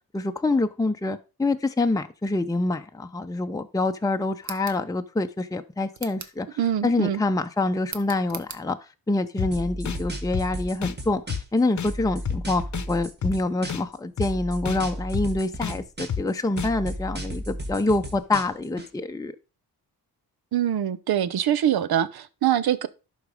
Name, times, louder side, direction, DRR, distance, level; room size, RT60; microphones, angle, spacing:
voice 1, 0.1-6.5 6.8-8.8 9.1-19.3, left 2 dB, 10° left, 0.6 m, -26 dB
sound 1, 4.4-4.8 5.9-6.4 7.9-8.6, right 5 dB, 50° right, 1.2 m, -39 dB
voice 2, 6.6-7.2 20.5-22.9, right 10 dB, 80° right, 0.7 m, -24 dB
sound 2, 9.4-9.5 9.9-10.0 10.3-10.5 10.8-10.9 11.3-11.4 11.8-11.9 12.3-12.4 12.7-12.9 13.2-13.3 13.7-13.8 14.2-14.3 14.6-14.8 15.1-15.3 15.6-15.7 16.1-16.2 16.6-16.7, left 7 dB, 50° left, 0.8 m, -29 dB
sound 3, 9.5-11.6 11.9-13.9 14.2-16.3 16.6-18.9, right 1 dB, 30° right, 1.7 m, -34 dB
11.0 x 4.0 x 4.8 m
cardioid pair, 60°, 36 cm